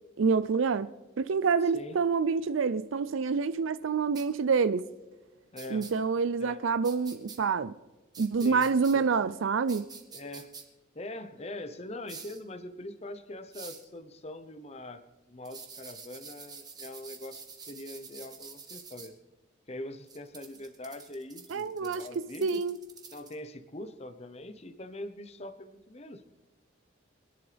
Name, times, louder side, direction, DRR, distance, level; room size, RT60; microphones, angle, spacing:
voice 1, 0.2-0.9 1.2-4.9 5.7-7.7 8.2-9.8 21.5-22.0 22.4-22.7, right 5 dB, 80° right, 0.5 m, -27 dB
voice 2, 1.6-2.0 5.5-5.9 6.4-6.6 8.4-9.1 10.1-10.5 10.9-15.0 15.3-19.1 19.7-22.6 23.1-26.3, left 1 dB, 30° left, 0.9 m, -43 dB
sound 1, 4.1-4.2 5.6-5.9 6.8-7.4 8.1-8.9 9.7-10.6 12.1-12.4 13.5-13.8 15.4-19.1 20.1-23.3, right 5 dB, 20° right, 1.3 m, -47 dB
24.5 x 10.5 x 3.4 m
head